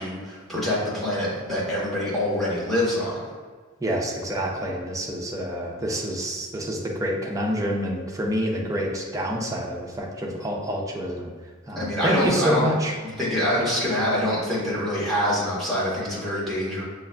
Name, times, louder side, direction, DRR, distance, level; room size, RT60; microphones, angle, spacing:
voice 1, 0.0-3.2 11.8-12.7 13.0-16.8, left 1 dB, ahead, -8 dB, 1.2 m, -25 dB
voice 2, 3.8-11.3 11.7-13.0 13.6-13.7, equal, 15° right, -1 dB, 0.5 m, -27 dB
5.9 x 2.4 x 2.2 m, 1.5 s
head